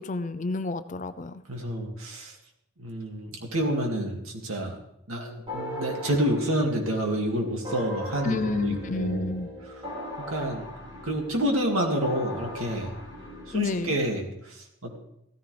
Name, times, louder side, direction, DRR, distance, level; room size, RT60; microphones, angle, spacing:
voice 1, 0.0-1.4 8.2-9.5 13.5-14.0, left 3 dB, 35° left, 12 dB, 0.5 m, -29 dB
voice 2, 1.5-2.4 2.8-4.8 5.1-9.3 10.3-10.7 11.0-12.9 13.5-15.0, right 1 dB, 85° right, 2 dB, 2.4 m, -28 dB
sound 1, 5.5-14.2, left 1 dB, 25° right, 2.9 m, -39 dB
15.0 x 14.0 x 3.4 m, 0.80 s
head